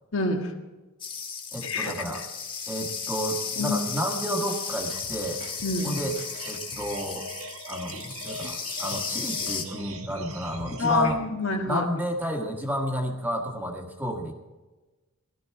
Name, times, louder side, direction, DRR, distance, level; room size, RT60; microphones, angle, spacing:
voice 1, 0.1-0.5 1.6-1.9 3.6-3.8 5.6-5.9 10.8-11.8, left 3 dB, 65° left, 3 dB, 1.7 m, -26 dB
sound 1, 1.0-9.6, left 6 dB, 25° left, 1.5 m, -35 dB
voice 2, 1.5-2.2 2.7-5.4 5.8-6.2 6.5-7.3 7.7-11.2 11.6-14.3, equal, 10° right, 1 dB, 1.6 m, -31 dB
sound 2, 3.9-11.1, right 1 dB, 80° right, 1.6 m, -41 dB
17.0 x 13.0 x 4.7 m, 1.2 s
head